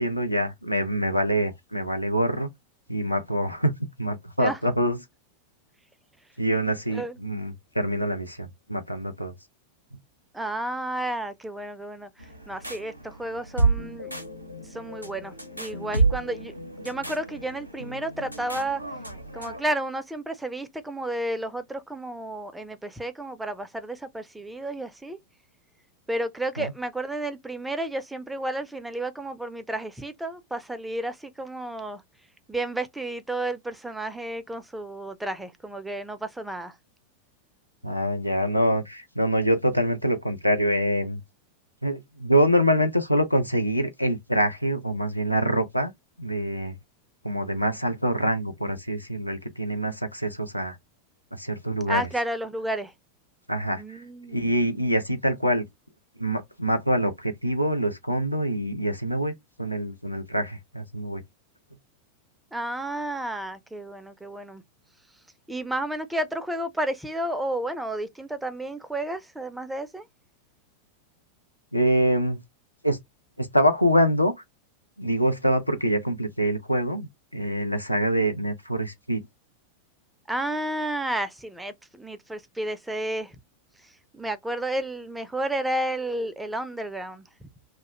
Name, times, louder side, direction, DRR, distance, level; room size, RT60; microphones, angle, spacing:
voice 1, 0.0-2.5 2.9-3.7 4.0-5.0 6.4-9.3 26.6-26.7 37.8-41.2 41.8-45.9 46.2-46.8 47.2-50.8 51.3-52.1 53.5-55.6 56.2-61.2 71.7-72.4 72.8-73.0 73.4-74.3 75.0-79.2, equal, 90° left, 0.4 m, -25 dB
voice 2, 10.3-14.1 14.7-18.8 19.3-25.2 26.1-32.0 32.5-36.8 51.9-52.9 53.7-54.5 62.5-64.6 65.5-70.0 80.3-83.4 83.8-87.5, right 1 dB, 5° right, 0.4 m, -32 dB
sound 1, 12.2-19.6, right 3 dB, 90° right, 0.5 m, -30 dB
2.3 x 2.0 x 2.7 m
figure-of-eight pair, 90°, 0 cm